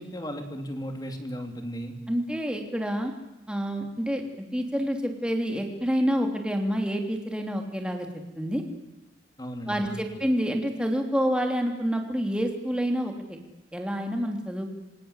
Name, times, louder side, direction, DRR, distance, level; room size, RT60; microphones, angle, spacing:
voice 1, 0.0-2.0 9.4-10.0, equal, 20° left, 5 dB, 3.2 m, -35 dB
voice 2, 2.1-3.1 3.5-4.2 4.5-8.1 8.4-8.6 9.7-13.4 13.7-14.7, equal, 5° right, 3 dB, 3.2 m, -28 dB
27.5 x 25.0 x 8.2 m, 1.0 s
head